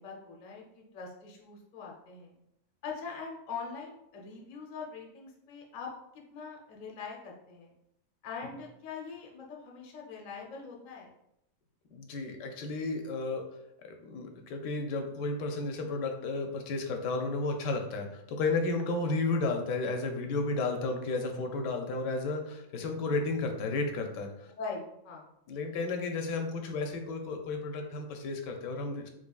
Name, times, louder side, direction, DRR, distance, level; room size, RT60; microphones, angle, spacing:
voice 1, 0.0-2.4 2.8-5.9 6.1-7.7 8.2-11.1 24.6-25.3, left 5 dB, 65° left, -1 dB, 0.4 m, -42 dB
voice 2, 11.9-13.4 13.8-24.5 25.5-29.1, left 3 dB, 85° left, 4 dB, 1.2 m, -33 dB
4.5 x 2.4 x 2.3 m, 0.82 s
omnidirectional pair, 1.8 m